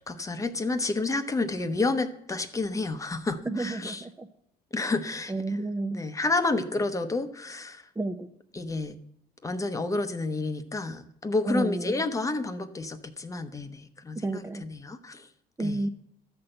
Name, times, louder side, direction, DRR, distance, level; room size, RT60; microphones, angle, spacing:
voice 1, 0.1-4.0 4.7-5.3 5.9-7.9 8.5-9.0 9.4-15.3 15.6-15.8, left 3 dB, 20° left, 9 dB, 0.8 m, -30 dB
voice 2, 3.5-4.3 5.3-6.0 8.0-8.3 11.5-12.0 14.2-14.6 15.6-15.9, right 2 dB, 15° right, 7 dB, 0.6 m, -31 dB
13.0 x 4.3 x 7.8 m, 0.73 s
cardioid pair, 110°, 17 cm